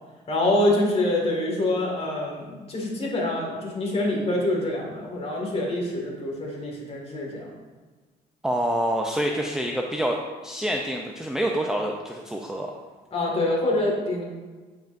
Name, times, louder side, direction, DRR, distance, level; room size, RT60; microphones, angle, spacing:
voice 1, 0.3-7.5 13.1-14.2, left 1 dB, 35° left, -1 dB, 1.9 m, -25 dB
voice 2, 8.4-12.7, equal, 5° right, 1 dB, 0.4 m, -27 dB
9.1 x 5.2 x 2.5 m, 1.3 s
cardioid pair, 110°, 17 cm